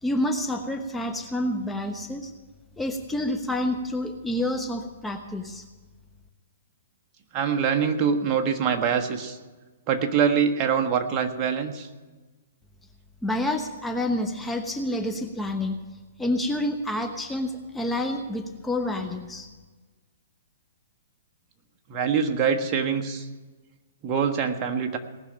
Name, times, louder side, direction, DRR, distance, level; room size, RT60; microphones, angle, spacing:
voice 1, 0.0-2.3 2.8-5.6 13.2-15.8 16.2-19.5, left 1 dB, 5° left, 5 dB, 1.0 m, -28 dB
voice 2, 7.3-9.4 9.9-11.9 21.9-23.3 24.0-25.0, right 7 dB, 30° right, 3 dB, 1.5 m, -24 dB
19.0 x 6.6 x 8.8 m, 1.3 s
hypercardioid pair, 130°, 0 cm